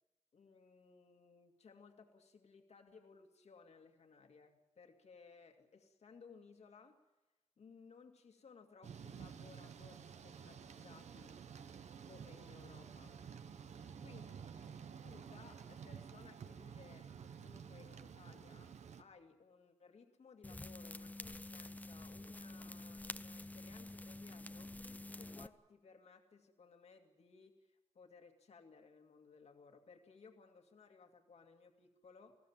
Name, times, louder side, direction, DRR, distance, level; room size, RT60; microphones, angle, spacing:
voice 1, 0.3-7.0 7.6-11.4 12.0-13.3 14.0-14.7 15.0-24.7 25.1-32.4, left 5 dB, 65° left, 4 dB, 2.3 m, -61 dB
Thunder / Rain, 8.8-19.0, right 7 dB, 75° right, 1.1 m, -52 dB
sound 1, 20.4-25.5, left 2 dB, 15° left, 0.7 m, -48 dB
27.5 x 17.0 x 7.4 m, 1.0 s
wide cardioid pair, 100°, 12 cm